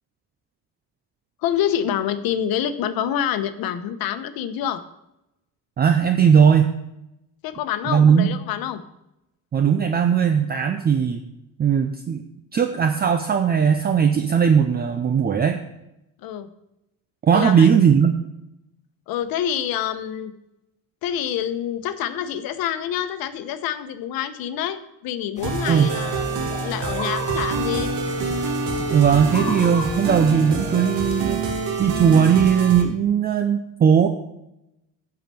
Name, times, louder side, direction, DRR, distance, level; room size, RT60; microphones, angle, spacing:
voice 1, 1.4-4.8 7.4-8.8 16.2-16.5 17.3-17.7 19.1-20.3 21.0-27.9, left 10 dB, 90° left, 11 dB, 1.0 m, -27 dB
voice 2, 5.8-6.7 7.9-8.3 9.5-11.2 11.6-12.3 12.5-15.6 17.2-18.2 25.7-25.9 28.9-31.4 31.8-34.1, right 7 dB, 30° right, 7 dB, 0.6 m, -18 dB
sound 1, 25.4-31.2, left 2 dB, 20° left, 1.9 m, -35 dB
sound 2, 25.4-32.8, right 3 dB, 90° right, 1.8 m, -26 dB
10.5 x 4.9 x 7.6 m, 0.87 s
cardioid pair, 160°, 34 cm